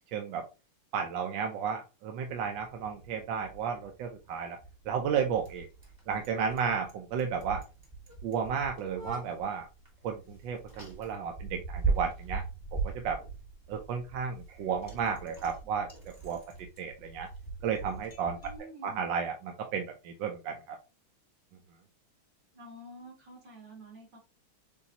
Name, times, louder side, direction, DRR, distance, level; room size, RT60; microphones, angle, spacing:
voice 1, 0.1-0.5 0.9-4.6 4.8-5.7 6.1-7.6 8.2-9.7 10.0-12.4 12.7-13.2 13.7-15.9 16.2-16.4 16.8-17.3 17.6-18.4 18.8-20.8, right 6 dB, 70° right, 4 dB, 1.2 m, -33 dB
Bicycle, 2.3-18.6, right 4 dB, 10° right, 1.2 m, -40 dB
voice 2, 18.4-19.0 22.5-24.2, right 1 dB, 50° right, -3 dB, 3.3 m, -49 dB
6.9 x 2.7 x 2.8 m, 0.29 s
omnidirectional pair, 2.4 m